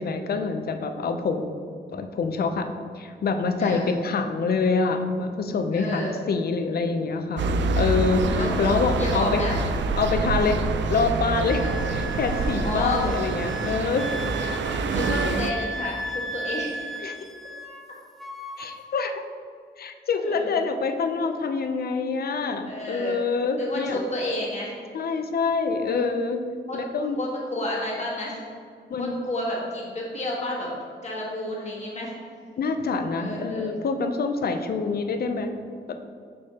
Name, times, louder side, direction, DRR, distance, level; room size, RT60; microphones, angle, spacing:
voice 1, 0.0-1.5 1.9-2.7 3.0-9.4 10.0-10.6 10.9-11.6 11.9-14.1 17.0-17.2 18.6-19.2 19.8-24.0 24.9-26.5 26.7-27.3 28.9-29.1 32.6-35.5 35.9-36.0, left 4 dB, 55° left, 7 dB, 0.5 m, -26 dB
voice 2, 5.7-6.2 8.3-8.5 9.0-9.6 11.6-11.8 12.6-13.1 14.9-17.0 20.2-20.5 22.6-23.2 23.6-24.7 25.8-26.1 26.7-26.8 27.1-28.4 29.0-30.7 31.0-32.1 33.2-33.7, left 1 dB, 40° left, -4 dB, 1.5 m, -30 dB
sound 1, 7.4-15.5, right 3 dB, 85° right, 0.4 m, -26 dB
Wind instrument woodwind instrument, 11.5-17.9 18.2-18.8, equal, ahead, 0.5 m, -35 dB
6.5 x 5.5 x 2.8 m, 2.1 s
wide cardioid pair, 130°, 19 cm